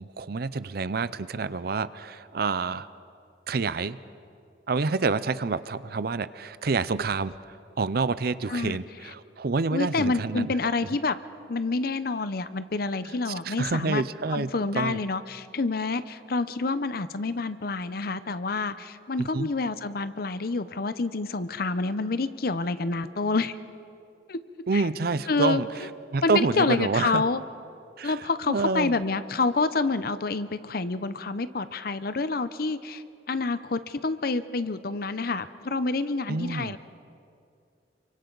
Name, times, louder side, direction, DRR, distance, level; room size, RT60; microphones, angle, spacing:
voice 1, 0.0-2.9 3.5-4.0 4.7-10.5 13.1-14.5 14.7-15.0 19.2-19.5 24.7-27.2 28.0-29.0 36.3-36.8, right 4 dB, 60° right, 15 dB, 0.6 m, -28 dB
voice 2, 9.7-11.2 11.5-14.0 14.3-23.5 24.3-24.4 24.7-24.8 25.3-25.6 26.2-27.4 28.0-36.8, left 3 dB, 55° left, 13 dB, 0.7 m, -28 dB
28.5 x 24.0 x 4.0 m, 2.4 s
head